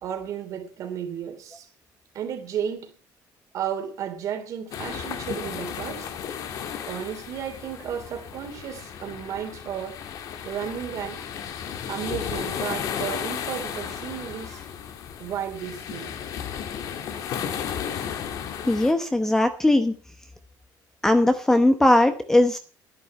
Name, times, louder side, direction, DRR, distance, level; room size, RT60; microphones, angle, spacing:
voice 1, 0.0-1.7 2.1-2.9 3.5-6.1 6.9-10.0 10.4-11.2 11.9-14.6 15.2-16.1, right 9 dB, 45° right, 3.0 m, -33 dB
sound 1, 4.7-18.9, left 8 dB, 50° left, 1.6 m, -34 dB
voice 2, 18.7-19.9 21.0-22.6, left 1 dB, 5° left, 0.9 m, -19 dB
12.0 x 11.0 x 5.7 m
cardioid pair, 175°, 8 cm